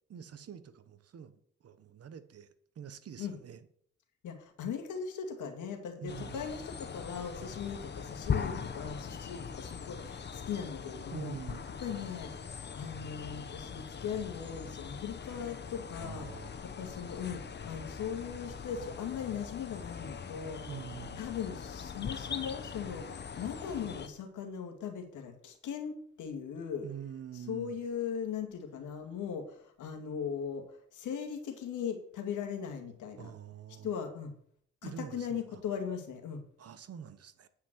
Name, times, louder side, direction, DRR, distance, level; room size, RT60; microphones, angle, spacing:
voice 1, 0.1-3.7 6.0-6.5 11.1-11.6 16.0-16.5 20.7-21.2 26.8-27.8 33.1-33.9 34.8-35.6 36.6-37.5, right 8 dB, 50° right, 1.1 m, -46 dB
voice 2, 4.2-11.3 11.8-12.3 12.7-16.3 16.8-20.6 21.2-26.8 27.5-33.3 33.8-34.3 34.8-36.4, left 7 dB, 80° left, 2.3 m, -39 dB
sound 1, 6.1-24.1, left 6 dB, 35° left, 1.0 m, -41 dB
9.7 x 5.8 x 7.6 m
cardioid pair, 90°, 30 cm